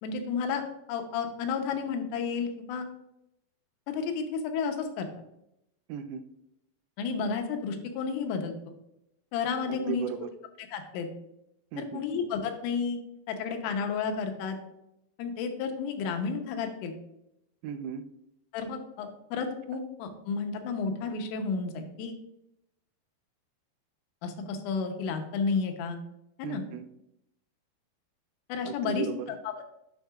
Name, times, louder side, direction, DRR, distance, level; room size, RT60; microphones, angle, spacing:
voice 1, 0.0-0.6 0.9-2.9 3.9-5.1 7.0-8.5 9.3-10.1 10.7-11.1 11.8-13.0 13.3-14.6 15.2-17.0 18.5-22.2 24.2-26.0 26.4-26.6 28.5-29.1 29.4-29.7, left 5 dB, 85° left, 5 dB, 3.4 m, -32 dB
voice 2, 5.9-6.2 9.7-10.3 11.7-12.0 17.6-18.0 26.4-26.9 28.6-29.3, right 8 dB, 90° right, 9 dB, 3.3 m, -36 dB
10.0 x 6.4 x 2.4 m, 0.82 s
omnidirectional pair, 5.7 m